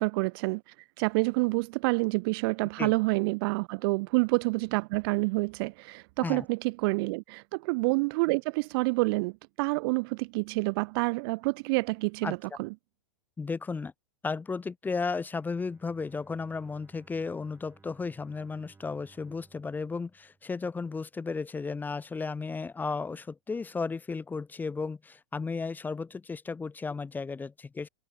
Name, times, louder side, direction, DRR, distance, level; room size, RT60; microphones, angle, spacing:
voice 1, 0.0-12.7, right 27 dB, 40° right, 0.4 m, -28 dB
voice 2, 13.4-13.9 14.2-27.9, left 4 dB, 10° left, 0.7 m, -34 dB
Bowed string instrument, 15.3-21.3, right 4 dB, 10° right, 5.6 m, -61 dB
hypercardioid pair, 110°, 18 cm